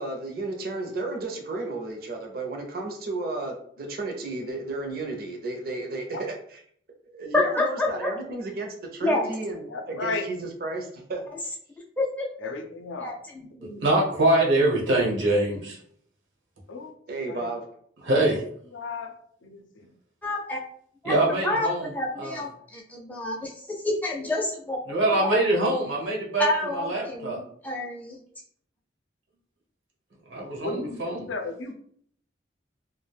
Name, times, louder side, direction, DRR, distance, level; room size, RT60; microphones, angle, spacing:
voice 1, 0.0-6.6 7.1-11.4 17.1-17.6, right 2 dB, 50° right, 2 dB, 0.5 m, -33 dB
voice 2, 7.3-8.1 9.0-9.3 12.0-12.3 13.0-13.8 20.2-20.6 21.0-21.1 21.4-24.8 25.2-25.4 26.4-28.2, left 2 dB, 10° left, -3 dB, 0.4 m, -28 dB
voice 3, 9.7-10.3 12.4-13.1 16.7-16.9 17.3-17.5 18.7-19.1 19.4-19.9 30.6-31.7, left 3 dB, 85° left, 5 dB, 0.5 m, -34 dB
voice 4, 13.8-15.8 18.0-18.4 21.0-21.9 22.2-22.4 24.9-27.4 30.3-31.3, right 2 dB, 85° right, -2 dB, 0.9 m, -24 dB
2.3 x 2.1 x 3.2 m, 0.62 s
head